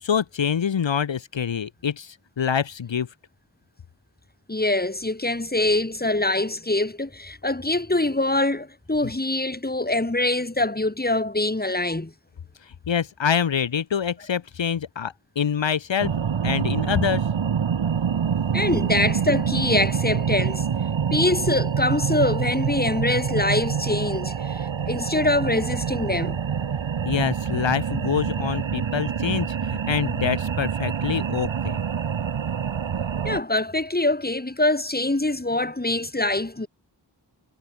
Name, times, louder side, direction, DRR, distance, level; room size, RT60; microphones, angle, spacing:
voice 1, 0.0-3.1 12.6-16.1 16.4-17.3 27.0-31.8, left 7 dB, 80° left, 1.1 m, -26 dB
voice 2, 4.5-12.1 18.5-20.6 21.1-26.4 33.2-36.7, left 2 dB, 20° left, 3.0 m, -24 dB
sound 1, 16.0-33.4, right 7 dB, 90° right, 1.3 m, -26 dB
wide cardioid pair, 60°, 44 cm